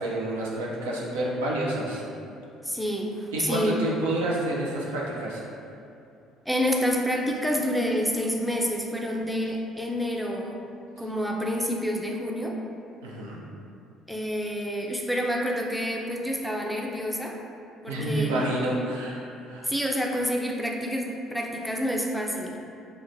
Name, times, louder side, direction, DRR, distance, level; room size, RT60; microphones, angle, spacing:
voice 1, 0.0-2.0 3.3-5.4 13.0-13.4 17.9-19.7, right 1 dB, 85° right, -4 dB, 0.4 m, -29 dB
voice 2, 2.6-3.8 6.5-10.6 11.0-12.6 14.1-17.4 17.8-18.6 19.6-22.6, equal, ahead, 0 dB, 0.4 m, -28 dB
3.0 x 2.0 x 2.5 m, 2.6 s
hypercardioid pair, 60°, 0 cm